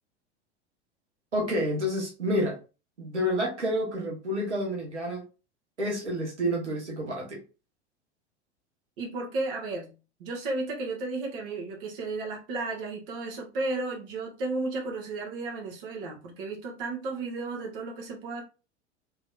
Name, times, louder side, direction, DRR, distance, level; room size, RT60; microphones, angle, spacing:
voice 1, 1.3-2.6 3.0-5.2 5.8-7.4, equal, 80° right, 1.2 m, -29 dB
voice 2, 9.0-9.9 10.2-18.4, right 3 dB, 50° right, 1.2 m, -33 dB
3.5 x 3.0 x 2.3 m
figure-of-eight pair, 85°, 34 cm